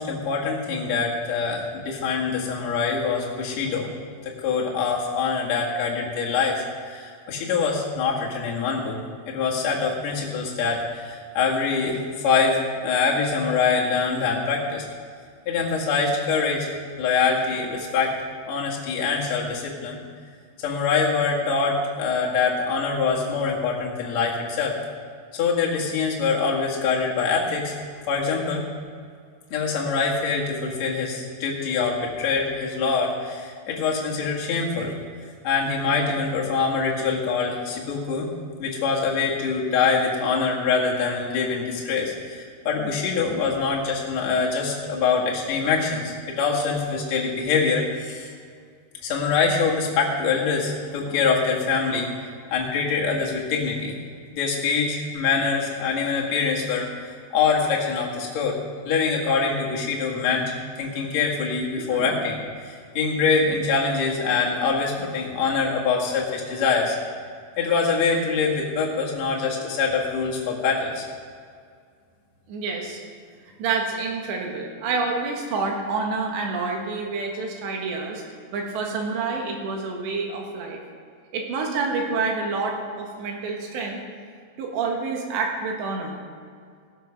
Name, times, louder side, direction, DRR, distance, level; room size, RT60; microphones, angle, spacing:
voice 1, 0.0-3.9 4.3-9.0 9.3-14.8 15.5-16.7 17.0-18.1 18.4-20.0 20.6-24.8 25.3-27.8 28.1-28.6 29.5-34.9 35.4-38.3 38.6-48.3 49.0-52.1 52.5-54.0 54.3-58.6 58.8-67.0 67.6-71.1, left 5 dB, 50° left, -3 dB, 2.4 m, -24 dB
voice 2, 61.8-62.2 72.5-73.0 73.6-80.8 81.3-84.0 84.6-86.2, right 4 dB, 75° right, 1 dB, 3.7 m, -28 dB
17.0 x 7.4 x 5.8 m, 2.1 s
omnidirectional pair, 5.1 m